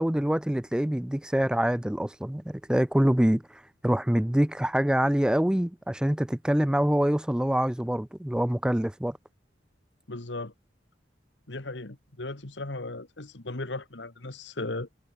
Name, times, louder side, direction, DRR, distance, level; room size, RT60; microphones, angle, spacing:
voice 1, 0.0-9.2, equal, 5° right, 0.3 m, -25 dB
voice 2, 10.1-10.5 11.5-14.9, left 2 dB, 80° left, 2.0 m, -36 dB
head